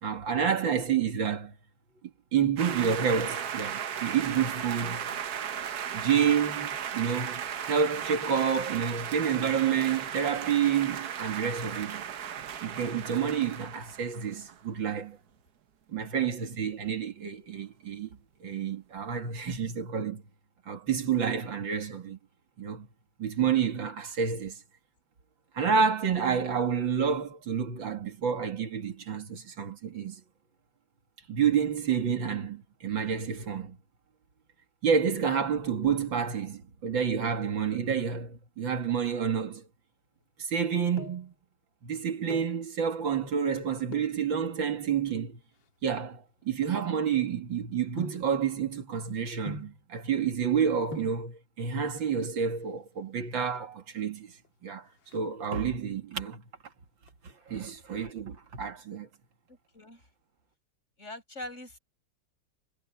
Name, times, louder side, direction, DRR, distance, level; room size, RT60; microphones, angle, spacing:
voice 1, 0.0-1.5 2.3-5.0 5.9-12.0 12.6-15.2 15.9-18.1 18.4-20.2 20.7-22.2 22.6-22.9 23.2-24.6 25.5-30.2 31.3-33.8 34.8-39.7 40.4-41.3 41.8-45.4 45.8-56.4 57.2-59.1, right 7 dB, 85° right, 2.8 m, -29 dB
sound 1, 2.6-14.6, right 8 dB, 60° right, 1.4 m, -36 dB
sound 2, 40.7-41.4 42.1-42.6 43.9-44.2 45.0-47.4 48.0-48.4 49.5-49.9 50.6-50.7 50.9-51.3 52.4-52.9 53.2-53.3 53.5-53.7 54.1-54.5 54.8-55.8 56.2-56.7 57.0-58.2 58.5-58.6, left 2 dB, 85° left, 2.4 m, -44 dB
voice 2, 59.5-60.1 61.0-61.8, left 1 dB, 35° left, 8.1 m, -44 dB
omnidirectional pair, 2.0 m